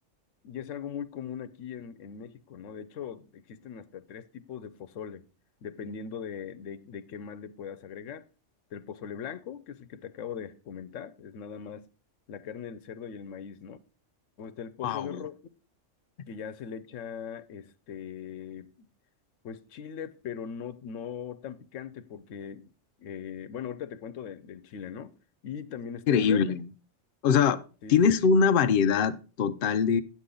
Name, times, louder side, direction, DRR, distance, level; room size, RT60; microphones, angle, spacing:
voice 1, 0.4-5.2 5.6-8.2 8.7-11.9 12.3-13.8 14.4-15.3 16.3-18.9 19.4-22.7 23.0-25.1 25.4-26.6 27.8-28.0, left 8 dB, 90° left, 1.0 m, -40 dB
voice 2, 14.8-15.2 26.1-26.7 27.2-27.6 27.9-30.0, left 6 dB, 55° left, 0.7 m, -23 dB
9.0 x 8.3 x 3.8 m
omnidirectional pair, 1.3 m